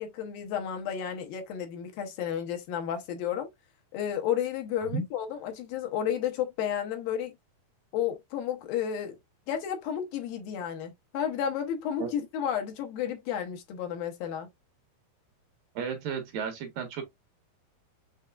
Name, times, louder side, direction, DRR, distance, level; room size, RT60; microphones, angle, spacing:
voice 1, 0.0-3.5 3.9-7.3 7.9-9.2 9.5-14.5, left 9 dB, 75° left, 2.5 m, -32 dB
voice 2, 15.8-17.0, right 5 dB, 70° right, 2.6 m, -33 dB
6.6 x 3.5 x 2.3 m
omnidirectional pair, 4.5 m